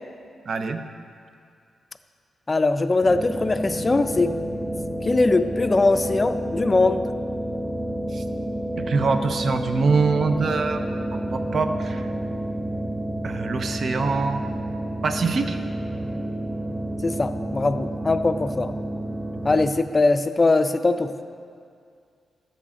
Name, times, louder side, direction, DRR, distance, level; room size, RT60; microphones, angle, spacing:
voice 1, 0.5-0.8 8.1-8.2 8.8-10.8 11.1-12.1 13.2-14.4 15.0-15.6, right 4 dB, 55° right, 8 dB, 0.6 m, -24 dB
voice 2, 2.5-4.3 5.0-7.1 17.0-18.8 19.4-21.1, left 3 dB, 30° left, 9 dB, 0.4 m, -21 dB
sound 1, 3.0-19.7, right 1 dB, 20° right, 0.8 m, -29 dB
13.0 x 7.0 x 3.7 m, 2.3 s
cardioid pair, 100°, 0 cm